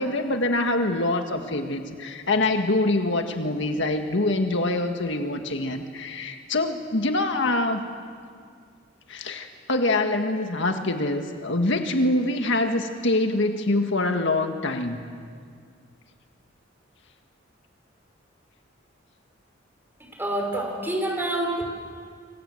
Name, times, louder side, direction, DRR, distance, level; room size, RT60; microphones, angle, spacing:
voice 1, 0.0-7.8 9.1-15.0, left 2 dB, 70° left, 5 dB, 1.8 m, -25 dB
voice 2, 20.2-21.6, right 1 dB, 10° right, 1 dB, 5.9 m, -27 dB
26.0 x 26.0 x 8.0 m, 2.1 s
head